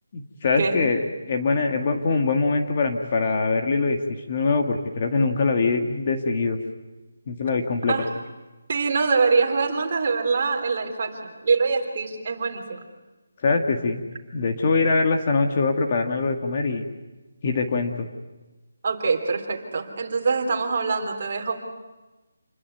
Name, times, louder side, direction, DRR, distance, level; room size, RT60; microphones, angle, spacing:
voice 1, 0.1-4.0 4.3-6.6 7.3-8.0 13.4-14.0 14.3-16.8 17.4-18.1, left 4 dB, 30° left, 4 dB, 1.9 m, -23 dB
voice 2, 8.7-12.8 18.8-21.6, right 4 dB, 35° right, 3 dB, 3.6 m, -24 dB
28.5 x 21.0 x 9.4 m, 1.1 s
hypercardioid pair, 175°, 0 cm